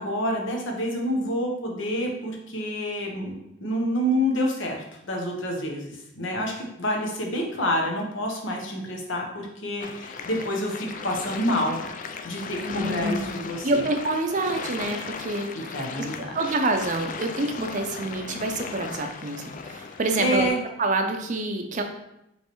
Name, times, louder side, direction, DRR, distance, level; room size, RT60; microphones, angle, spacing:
voice 1, 0.0-11.8 12.2-13.8 15.5-16.3 20.2-20.6, equal, 75° left, 1 dB, 0.9 m, -28 dB
sound 1, 9.8-20.5, left 5 dB, 40° left, 0.3 m, -37 dB
voice 2, 12.5-13.4 13.6-15.7 16.3-20.5 20.8-21.8, right 2 dB, 40° right, 4 dB, 0.5 m, -27 dB
5.3 x 3.2 x 3.0 m, 0.83 s
head